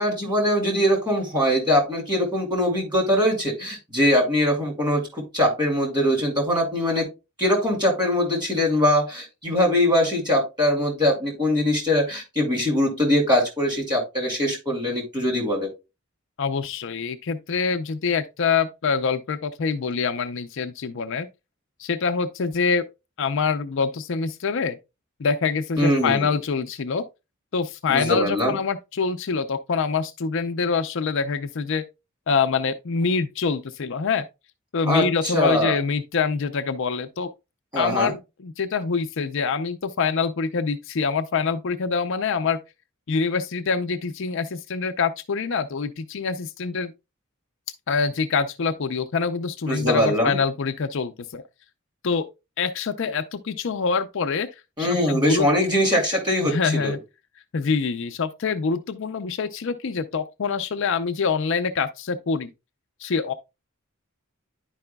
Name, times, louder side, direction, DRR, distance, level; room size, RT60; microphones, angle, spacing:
voice 1, 0.0-7.1 7.4-15.7 25.8-26.3 27.9-28.6 34.9-35.1 35.3-35.8 37.7-38.1 49.7-50.4 54.8-57.0, left 1 dB, 20° right, 2.4 m, -22 dB
voice 2, 16.4-21.3 21.8-22.8 23.2-24.8 25.2-27.0 27.5-31.8 32.3-34.2 34.7-37.3 37.8-42.6 43.1-46.9 47.9-51.4 52.0-52.3 52.6-54.5 54.8-55.5 56.4-57.0 57.5-62.5 63.0-63.3, left 5 dB, 65° left, 0.5 m, -25 dB
10.5 x 4.9 x 2.2 m
head